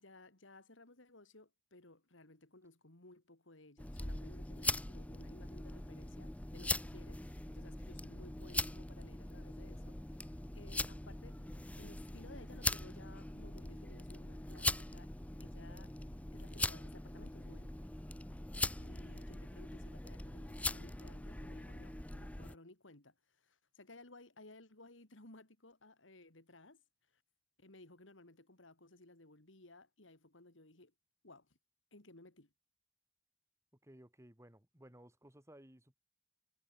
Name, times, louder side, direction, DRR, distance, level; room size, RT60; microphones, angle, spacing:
voice 1, 0.0-15.1 15.4-15.9 16.3-17.8 18.8-26.8 27.1-27.2 27.6-30.9 31.2-31.6 31.9-32.5, left 2 dB, 85° left, 3.1 m, -58 dB
sound 1, 3.8-22.5, left 2 dB, 5° left, 0.6 m, -41 dB
voice 2, 33.8-36.0, right 1 dB, 15° right, 3.6 m, -59 dB
head